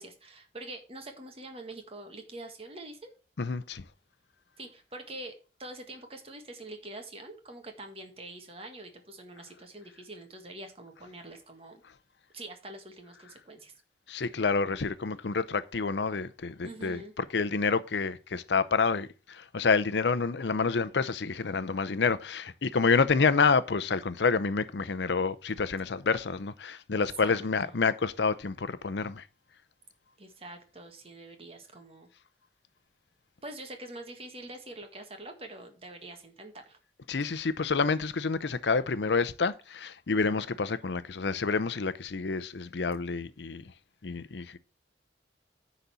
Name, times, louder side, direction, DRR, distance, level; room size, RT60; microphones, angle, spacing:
voice 1, 0.0-3.1 4.6-5.3 5.6-11.8 12.3-13.7 16.6-17.1 27.0-27.8 30.2-32.1 33.4-36.8, right 2 dB, 35° right, 1.7 m, -45 dB
voice 2, 3.4-3.8 14.1-29.2 37.1-43.6 44.0-44.6, left 4 dB, 80° left, 0.6 m, -28 dB
10.0 x 4.1 x 6.9 m
head